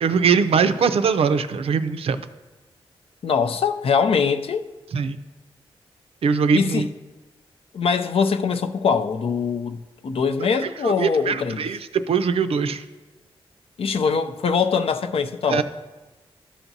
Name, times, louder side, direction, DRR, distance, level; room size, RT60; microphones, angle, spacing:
voice 1, 0.0-2.2 4.9-5.2 6.2-6.9 10.8-12.8 15.5-15.6, right 6 dB, 75° right, 0.4 m, -21 dB
voice 2, 3.2-4.6 6.5-6.9 7.7-11.7 13.8-15.6, left 5 dB, 70° left, 0.5 m, -22 dB
13.5 x 5.9 x 2.7 m
cardioid pair, 70°, 10 cm